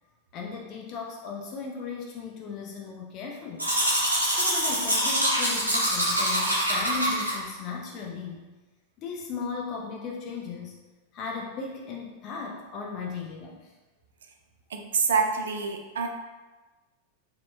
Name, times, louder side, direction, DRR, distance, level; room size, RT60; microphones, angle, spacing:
voice 1, 0.3-3.7 4.3-8.5 9.0-10.8 11.1-13.7, left 5 dB, 35° left, 0 dB, 0.4 m, -36 dB
Domestic sounds home sounds, 3.6-7.3, equal, 85° right, 0.7 m, -25 dB
voice 2, 14.7-16.1, right 5 dB, 65° right, 4 dB, 0.4 m, -26 dB
3.9 x 2.9 x 2.2 m, 1.2 s
figure-of-eight pair, 90°, 0 cm